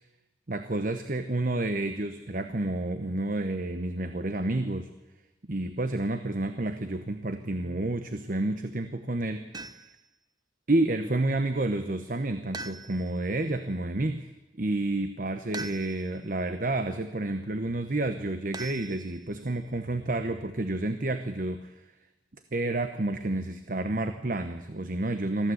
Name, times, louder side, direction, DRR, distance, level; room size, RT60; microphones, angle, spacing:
voice 1, 0.5-4.9 5.5-9.7 10.7-14.3 14.6-21.7 22.5-25.5, right 2 dB, 50° right, 9 dB, 1.0 m, -30 dB
sound 1, 9.5-10.1 12.5-13.3 15.5-16.2 18.5-19.4, right 2 dB, 25° right, 0.9 m, -41 dB
23.0 x 15.0 x 8.0 m, 1.1 s
head